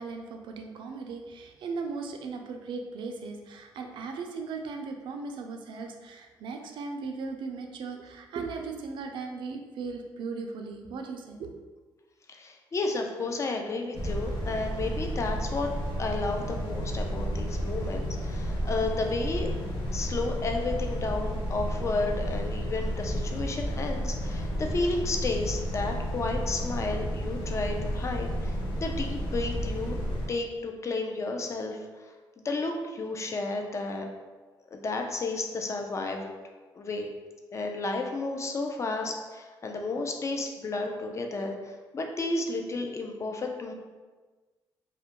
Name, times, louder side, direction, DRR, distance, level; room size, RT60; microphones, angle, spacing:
voice 1, 0.0-11.5, right 4 dB, 75° right, 3 dB, 0.4 m, -37 dB
voice 2, 12.3-15.7 16.0-19.5 19.9-30.0 30.3-34.0 34.7-36.3 36.7-37.1 37.5-43.7, left 3 dB, 35° left, 3 dB, 0.4 m, -32 dB
sound 1, 13.9-30.3, equal, 85° left, 0.6 m, -32 dB
2.3 x 2.1 x 2.9 m, 1.3 s
cardioid pair, 85°, 8 cm